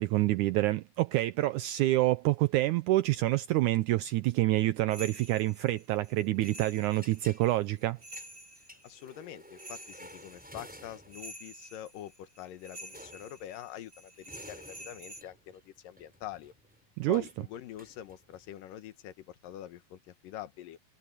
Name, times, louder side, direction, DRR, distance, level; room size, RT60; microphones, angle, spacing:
voice 1, 0.0-8.0 17.0-17.2, right 17 dB, 75° right, 2.0 m, -27 dB
sound 1, 4.9-15.2, right 1 dB, 30° right, 7.7 m, -49 dB
sound 2, 6.4-7.4 7.8-11.3 12.8-13.5 14.0-18.5, equal, ahead, 7.2 m, -53 dB
voice 2, 8.8-16.5 17.1-20.8, left 12 dB, 85° left, 2.9 m, -45 dB
omnidirectional pair, 3.8 m